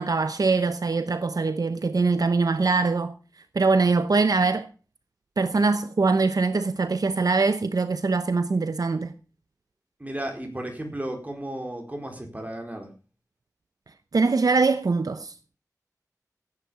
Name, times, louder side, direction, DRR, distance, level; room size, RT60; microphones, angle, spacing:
voice 1, 0.0-3.2 3.5-4.7 5.4-9.1 14.1-15.3, right 4 dB, 70° right, 0.8 m, -23 dB
voice 2, 10.0-12.9, right 1 dB, 25° right, 4.5 m, -34 dB
15.5 x 9.7 x 5.1 m
wide cardioid pair, 65°, 6 cm